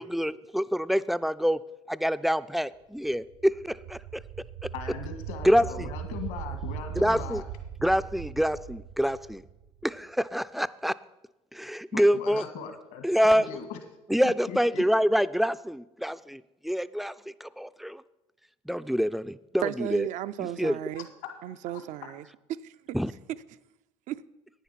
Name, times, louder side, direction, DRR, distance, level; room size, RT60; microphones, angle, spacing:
voice 1, 0.0-1.6 1.9-4.0 5.4-5.9 7.0-7.4 7.8-9.4 9.8-10.9 11.5-12.4 13.0-13.4 14.1-17.1 17.4-18.0 18.7-20.1 20.4-20.8 22.9-23.1, equal, ahead, 0.4 m, -26 dB
sound 1, 3.1-10.0, right 9 dB, 80° right, 1.0 m, -39 dB
voice 2, 4.7-7.4 11.9-13.8 14.2-14.8 20.9-21.0 21.7-21.8, left 7 dB, 75° left, 1.8 m, -39 dB
voice 3, 19.6-21.1 21.4-22.2 22.6-23.0 24.1-24.2, right 12 dB, 60° right, 0.5 m, -34 dB
10.5 x 9.3 x 5.8 m
hypercardioid pair, 75°, 14 cm